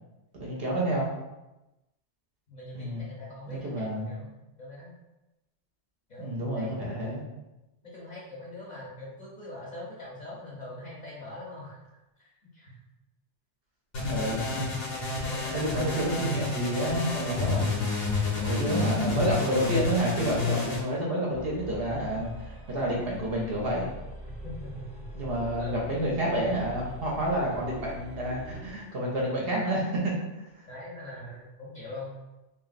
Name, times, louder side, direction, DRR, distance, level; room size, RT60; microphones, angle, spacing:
voice 1, 0.4-1.1 2.7-3.1 3.5-4.1 6.2-7.2 14.1-14.8 15.1-17.8 18.5-23.9 25.2-30.2, right 1 dB, 60° right, -3 dB, 0.8 m, -29 dB
voice 2, 2.5-5.0 6.1-6.9 7.8-11.8 12.2-12.8 14.9-16.3 18.3-18.7 24.4-25.3 25.6-25.9 30.7-32.1, left 1 dB, 45° left, -6 dB, 0.7 m, -43 dB
sound 1, 13.9-20.8, left 3 dB, 80° left, 1.1 m, -30 dB
sound 2, 21.3-28.8, right 1 dB, 5° right, 0.5 m, -44 dB
2.9 x 2.5 x 2.4 m, 1.0 s
omnidirectional pair, 1.2 m